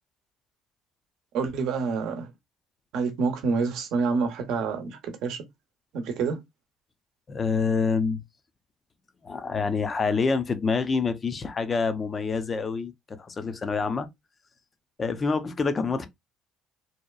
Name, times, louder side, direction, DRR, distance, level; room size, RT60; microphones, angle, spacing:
voice 1, 1.3-2.3 2.9-5.4 5.9-6.4, right 4 dB, 75° right, 0.7 m, -27 dB
voice 2, 7.3-8.2 9.2-14.1 15.0-16.1, left 4 dB, 35° left, 0.5 m, -27 dB
2.8 x 2.2 x 2.3 m
supercardioid pair, 80°, 0 cm